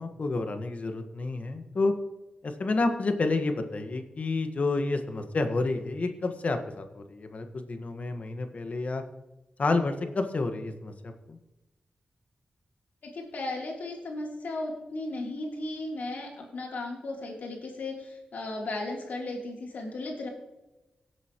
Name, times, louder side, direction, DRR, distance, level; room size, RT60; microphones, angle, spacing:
voice 1, 0.0-1.9 2.4-9.0 9.6-11.4, left 3 dB, 55° left, 6 dB, 1.5 m, -29 dB
voice 2, 13.0-20.3, left 2 dB, 80° left, -1 dB, 3.3 m, -35 dB
17.5 x 8.0 x 3.1 m, 1.0 s
cardioid pair, 55°, 3 cm